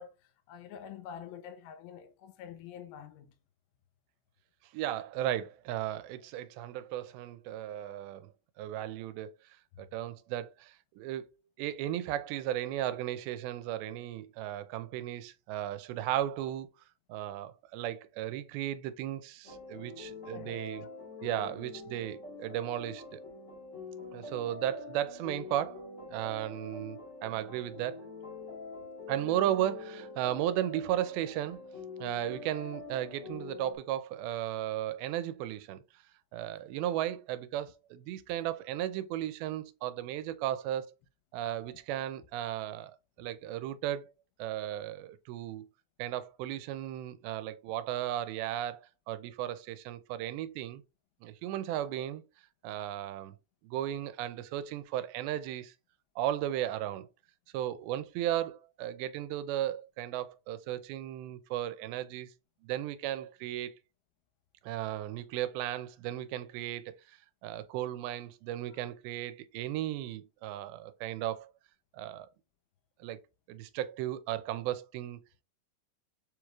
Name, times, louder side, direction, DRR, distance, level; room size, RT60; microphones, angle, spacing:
voice 1, 0.0-3.3 20.3-20.9 21.2-21.3, left 8 dB, 90° left, 2.5 m, -47 dB
voice 2, 4.7-9.3 9.8-11.3 11.6-16.7 17.1-20.9 21.2-23.2 24.1-28.0 29.1-31.6 32.0-35.8 36.3-40.9 41.3-42.9 43.2-44.1 44.4-45.7 46.0-50.8 51.2-52.2 52.6-53.4 53.6-55.7 56.2-57.1 57.5-62.3 62.6-63.7 64.6-71.5 71.9-72.3 73.0-73.2 73.5-75.2, right 12 dB, 85° right, 2.4 m, -35 dB
sound 1, 19.4-33.8, left 3 dB, 30° left, 1.5 m, -45 dB
6.9 x 3.1 x 2.3 m
omnidirectional pair, 4.3 m